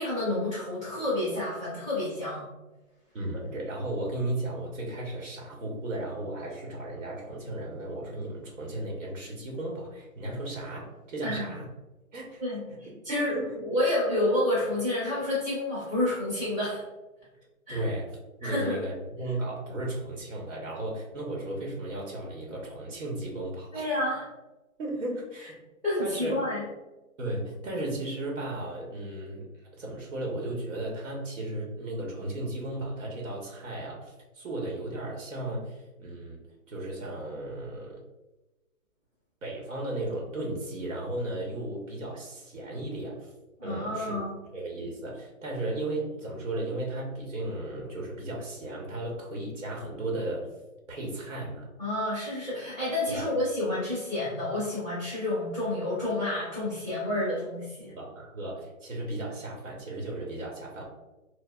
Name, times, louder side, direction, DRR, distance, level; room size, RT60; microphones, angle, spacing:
voice 1, 0.0-2.5 11.2-11.5 12.4-13.3 13.6-16.8 17.7-17.8 18.4-18.8 23.7-24.2 25.8-26.6 43.6-44.4 51.8-57.9, left 1 dB, 10° right, -13 dB, 1.1 m, -29 dB
voice 2, 3.1-11.7 12.1-12.4 13.1-13.6 17.7-23.9 24.8-25.6 26.0-26.4 27.2-36.4 36.7-38.0 39.4-43.3 43.6-44.2 44.5-50.5 50.9-51.7 53.1-53.3 57.9-60.8, right 1 dB, 60° right, -1 dB, 1.0 m, -35 dB
4.5 x 2.0 x 2.3 m, 1.1 s
hypercardioid pair, 170°, 42 cm